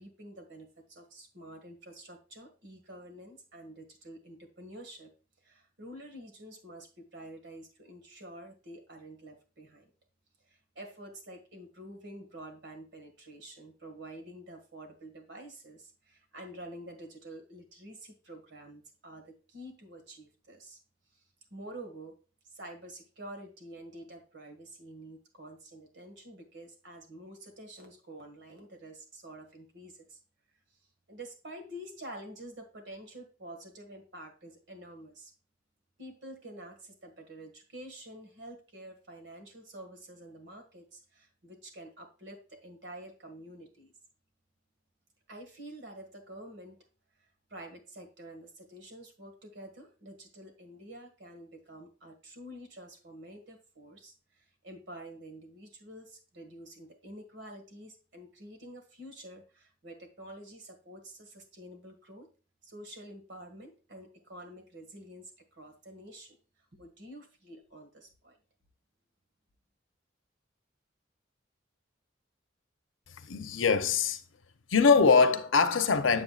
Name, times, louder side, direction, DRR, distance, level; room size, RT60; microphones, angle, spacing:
voice 1, 0.0-5.1 5.4-9.9 10.5-20.8 21.5-22.2 22.5-30.2 31.1-35.3 36.0-43.9 45.3-46.8 47.5-62.3 62.6-66.4 66.7-68.4, right 1 dB, 65° right, 1.9 m, -48 dB
voice 2, 73.2-74.2 74.7-76.2, left 5 dB, 85° left, 0.8 m, -23 dB
7.7 x 7.7 x 2.4 m
head